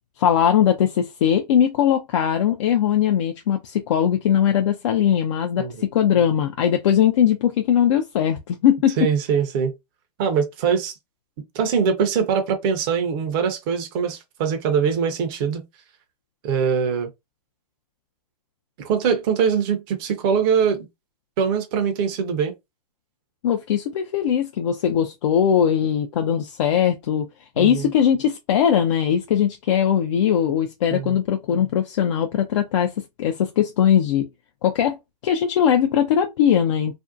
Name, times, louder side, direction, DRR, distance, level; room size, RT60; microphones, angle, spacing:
voice 1, 0.2-9.1 23.4-27.3 27.6-32.9 33.2-34.3 34.6-35.0 35.2-37.0, left 9 dB, 45° left, 0.4 m, -20 dB
voice 2, 9.0-9.7 10.2-10.9 11.5-15.6 16.4-17.1 18.8-20.9 21.4-22.5 27.6-27.9 30.9-31.2, right 6 dB, 35° right, 0.6 m, -22 dB
2.5 x 2.0 x 2.5 m
hypercardioid pair, 130°, 21 cm